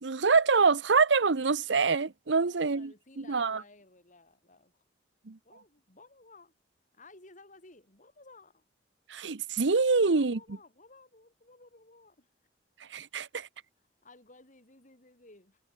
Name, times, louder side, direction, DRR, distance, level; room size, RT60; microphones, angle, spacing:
voice 1, 0.0-3.6 5.3-5.4 9.1-10.4 12.9-13.5, right 4 dB, 90° right, 0.9 m, -25 dB
voice 2, 2.4-4.7 5.4-6.5 6.9-8.6 10.0-12.3 14.0-15.6, left 3 dB, 45° left, 7.8 m, -56 dB
head